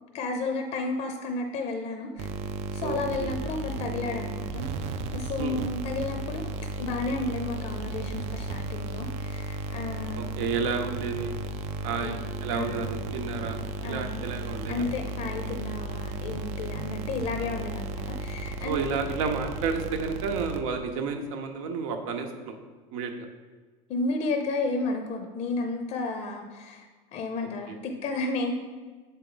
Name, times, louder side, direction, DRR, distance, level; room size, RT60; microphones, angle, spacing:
voice 1, 0.1-2.3 2.7-4.7 5.1-6.5 6.8-10.3 12.0-12.2 12.5-12.8 13.8-14.2 14.7-18.8 23.9-28.5, left 3 dB, 35° left, 5 dB, 0.5 m, -32 dB
sound 1, 2.2-21.0, right 3 dB, 40° right, 0.4 m, -34 dB
voice 2, 2.8-3.3 5.4-5.6 10.1-11.4 11.8-14.8 18.6-22.6 22.9-23.3 27.7-27.8, right 5 dB, 75° right, 5 dB, 0.9 m, -31 dB
7.0 x 4.4 x 3.9 m, 1.4 s
cardioid pair, 160°, 17 cm